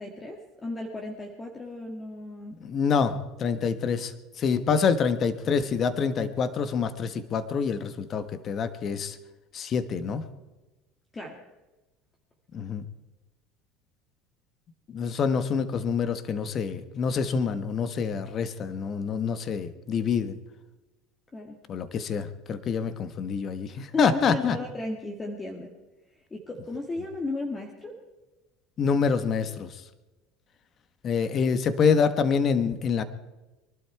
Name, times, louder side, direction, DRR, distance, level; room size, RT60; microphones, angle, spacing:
voice 1, 0.0-2.6 11.1-11.4 21.3-21.6 23.9-25.7 26.3-27.9, left 2 dB, 20° left, 1 dB, 2.3 m, -35 dB
voice 2, 2.6-9.2 9.5-10.3 12.5-12.8 14.9-20.4 21.7-24.6 28.8-29.8 31.0-33.0, left 6 dB, 40° left, 12 dB, 1.3 m, -26 dB
23.5 x 12.0 x 4.7 m, 1.1 s
supercardioid pair, 100°, 0 cm